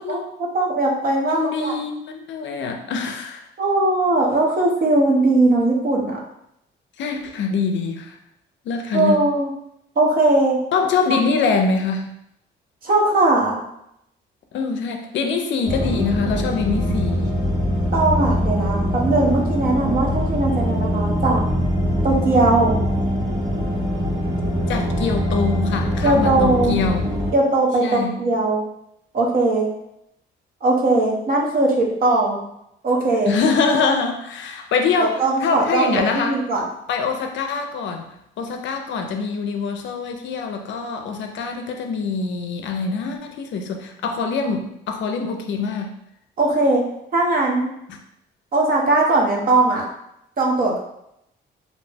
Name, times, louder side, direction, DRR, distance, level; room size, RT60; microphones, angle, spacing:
voice 1, 0.1-1.7 3.6-6.2 8.9-9.5 10.0-10.6 12.8-13.6 17.9-21.4 22.0-22.8 26.0-26.8 27.3-28.6 29.1-29.7 30.6-32.4 32.8-33.4 35.0-36.6 46.4-46.9 47.1-47.7 48.5-49.9 50.4-50.8, right 2 dB, 45° right, -2 dB, 0.8 m, -19 dB
voice 2, 1.2-3.4 7.0-8.2 8.7-9.3 10.7-12.1 14.5-17.3 24.7-27.0 27.8-28.1 33.3-36.4 36.9-38.1 38.4-45.9 47.9-48.0, left 4 dB, 70° left, 4 dB, 0.5 m, -24 dB
sound 1, 15.6-27.3, equal, 80° right, 1.3 m, -22 dB
2.6 x 2.1 x 3.2 m, 0.79 s
cardioid pair, 90°, 20 cm